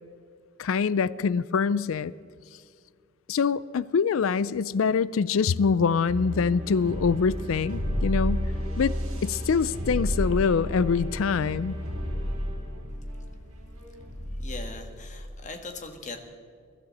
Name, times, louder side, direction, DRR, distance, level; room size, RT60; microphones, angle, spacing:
voice 1, 0.6-2.1 3.3-8.4 8.8-8.9 9.2-11.8, left 5 dB, 65° left, 19 dB, 0.4 m, -24 dB
sound 1, 6.1-15.5, equal, 75° right, 4.4 m, -32 dB
voice 2, 14.4-16.2, left 3 dB, 35° left, 5 dB, 1.6 m, -39 dB
22.0 x 13.0 x 4.2 m, 2.2 s
head